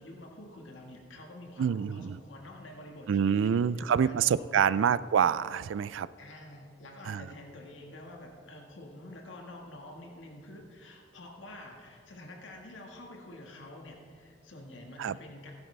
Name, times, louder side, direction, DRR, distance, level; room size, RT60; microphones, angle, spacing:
voice 1, 0.0-4.9 6.2-15.5, left 1 dB, 85° left, 1 dB, 1.7 m, -48 dB
voice 2, 1.6-2.2 3.1-6.1 7.1-7.3 15.0-15.2, right 7 dB, 85° right, 18 dB, 0.3 m, -26 dB
17.0 x 10.5 x 3.4 m, 2.2 s
head